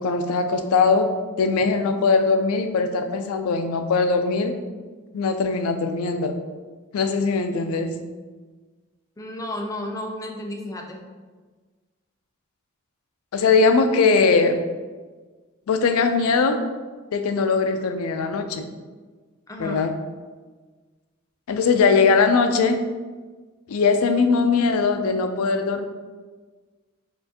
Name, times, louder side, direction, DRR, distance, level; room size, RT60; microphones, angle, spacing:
voice 1, 0.0-1.1 1.4-4.6 5.1-6.4 6.9-7.9 13.3-14.6 15.7-16.6 17.1-18.7 19.6-19.9 21.5-22.8 23.7-25.8, left 4 dB, 90° left, 7 dB, 0.4 m, -20 dB
voice 2, 9.2-11.0 19.5-19.8, left 1 dB, 15° left, 2 dB, 0.3 m, -32 dB
4.3 x 2.5 x 2.8 m, 1.4 s
head